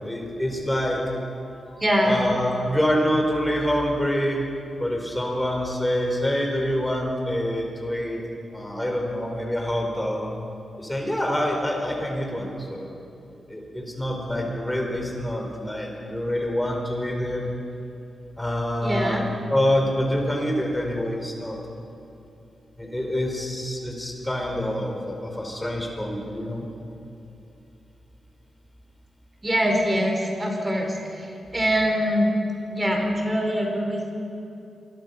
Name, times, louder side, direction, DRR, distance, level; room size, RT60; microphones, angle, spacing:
voice 1, 0.0-1.0 1.5-4.4 4.8-8.2 8.5-10.3 10.8-12.9 13.5-17.4 18.4-19.2 19.5-21.6 22.8-26.7, equal, 10° left, 1 dB, 4.8 m, -26 dB
voice 2, 1.8-2.2 18.8-19.3 29.4-32.3 32.7-34.1, equal, 20° right, 2 dB, 4.5 m, -23 dB
26.5 x 22.0 x 5.7 m, 2.8 s
wide cardioid pair, 105°, 0 cm